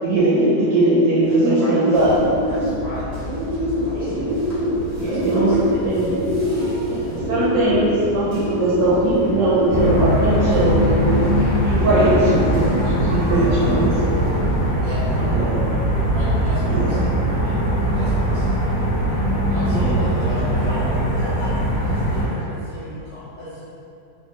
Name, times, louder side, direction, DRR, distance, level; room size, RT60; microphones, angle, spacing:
voice 1, 0.0-2.1 3.9-4.2 5.0-5.6 5.8-6.2 6.8-10.8 11.6-14.2 15.2-15.6 16.6-17.0 19.6-20.0, right 1 dB, 90° right, -10 dB, 1.3 m, -20 dB
voice 2, 1.2-1.8 2.4-3.1 3.5-4.6 5.0-5.7 13.3-13.8 14.8-15.3 16.0-17.6 17.9-18.6 19.5-20.8 21.1-21.4 22.1-22.6, right 1 dB, 40° right, -12 dB, 1.1 m, -35 dB
Bird, 1.9-14.7, left 1 dB, 70° right, 1.4 m, -25 dB
sound 1, 9.7-22.3, right 1 dB, 40° left, 1.3 m, -21 dB
voice 3, 20.4-20.8 21.1-23.6, left 1 dB, 65° left, -11 dB, 1.2 m, -36 dB
3.0 x 2.3 x 2.8 m, 2.7 s
omnidirectional pair, 1.9 m